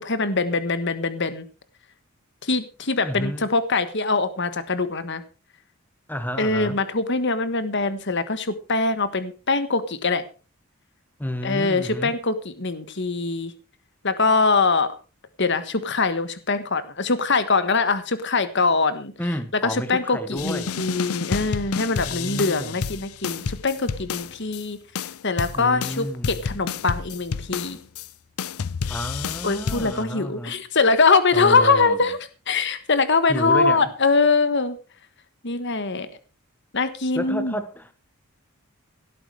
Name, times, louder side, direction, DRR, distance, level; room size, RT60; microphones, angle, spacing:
voice 1, 0.0-1.5 2.4-5.2 6.4-10.2 11.4-13.5 14.0-15.0 15.4-19.1 19.6-24.8 25.2-27.8 29.4-32.2 32.5-34.8 35.4-36.1 36.7-37.6, left 4 dB, 55° left, 1.4 m, -23 dB
voice 2, 3.0-3.5 6.1-6.8 11.2-12.2 19.2-20.8 22.0-22.8 25.5-26.4 28.9-30.6 31.3-32.1 33.3-33.9 37.1-37.9, equal, 10° left, 1.2 m, -31 dB
sound 1, 20.4-24.6 25.0-28.1 28.4-30.0, left 6 dB, 80° left, 0.6 m, -30 dB
17.0 x 8.6 x 4.9 m
head